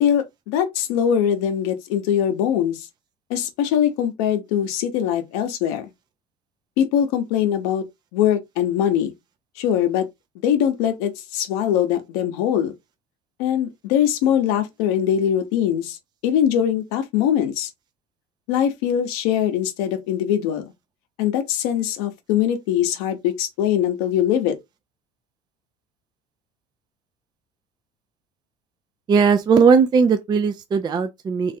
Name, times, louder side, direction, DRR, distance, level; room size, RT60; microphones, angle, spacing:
voice 1, 0.0-2.8 3.3-5.9 6.8-7.8 8.1-9.1 9.6-10.1 10.4-12.7 13.4-16.0 16.2-17.7 18.5-20.7 21.2-24.5, left 9 dB, 90° left, 0.8 m, -22 dB
voice 2, 29.1-31.6, right 5 dB, 25° right, 0.4 m, -18 dB
3.2 x 2.4 x 2.7 m
cardioid pair, 115°, 18 cm